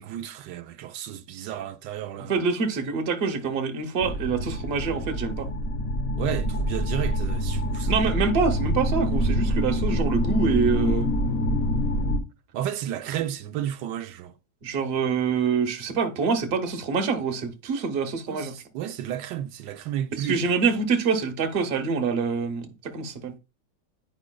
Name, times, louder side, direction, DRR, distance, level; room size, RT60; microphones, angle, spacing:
voice 1, 0.0-2.3 6.2-8.1 12.5-14.3 18.3-20.6, right 11 dB, 85° right, 1.2 m, -32 dB
voice 2, 2.3-5.5 7.9-11.1 14.6-18.5 20.2-23.3, right 5 dB, 45° right, 0.9 m, -25 dB
sound 1, 4.0-12.2, equal, 40° left, 1.0 m, -26 dB
9.7 x 5.0 x 2.2 m
omnidirectional pair, 1.9 m